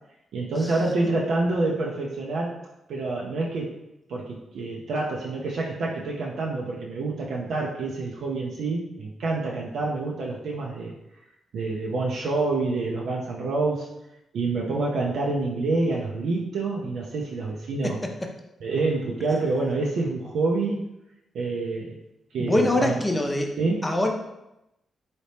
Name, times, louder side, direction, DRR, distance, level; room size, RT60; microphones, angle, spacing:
voice 1, 0.3-2.6 2.9-3.8 4.1-10.9 11.5-13.9 14.3-18.0 18.6-20.9 21.3-22.0 22.3-23.0 23.6-23.9, right 3 dB, 80° right, -3 dB, 0.5 m, -27 dB
voice 2, 17.8-18.3 22.4-23.5 23.8-24.1, left 1 dB, 15° left, 3 dB, 0.6 m, -24 dB
4.1 x 2.8 x 3.3 m, 0.89 s
cardioid pair, 90°, 0 cm